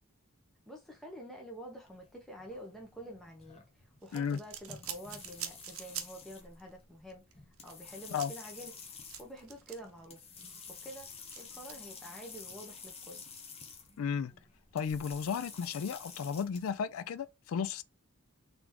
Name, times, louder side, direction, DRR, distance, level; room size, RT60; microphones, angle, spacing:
voice 1, 0.7-7.2 7.6-8.7 9.2-10.2 10.8-11.1 11.4-13.2, equal, ahead, 0.9 m, -48 dB
sound 1, 1.9-16.7, left 5 dB, 30° left, 0.8 m, -51 dB
sound 2, 4.0-6.3 6.6-6.7 7.1-10.1 10.4-11.7, right 10 dB, 75° right, 0.7 m, -45 dB
voice 2, 14.0-14.3 14.7-17.8, left 6 dB, 75° left, 0.3 m, -34 dB
4.0 x 3.4 x 2.9 m
head